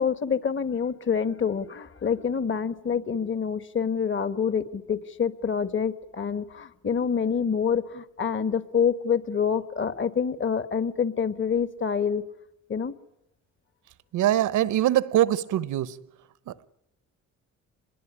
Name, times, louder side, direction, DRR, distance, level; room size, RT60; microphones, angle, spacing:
voice 1, 0.0-12.2 12.7-12.9, left 7 dB, 40° left, 1.8 m, -27 dB
voice 2, 14.1-16.0, right 12 dB, 80° right, 1.1 m, -23 dB
26.0 x 21.5 x 9.8 m
cardioid pair, 90°, 30 cm